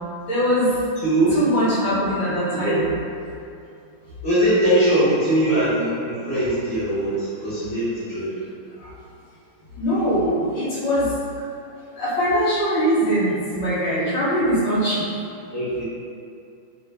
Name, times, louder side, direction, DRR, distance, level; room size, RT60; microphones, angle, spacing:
voice 1, 0.3-0.9 1.3-2.9 8.8-8.9 9.7-11.1 12.0-15.1, equal, 70° left, -10 dB, 1.6 m, -22 dB
voice 2, 1.0-1.4 2.5-2.7 4.2-8.3 15.5-15.8, right 1 dB, 15° right, -16 dB, 1.1 m, -21 dB
3.2 x 2.7 x 3.3 m, 2.5 s
omnidirectional pair, 2.2 m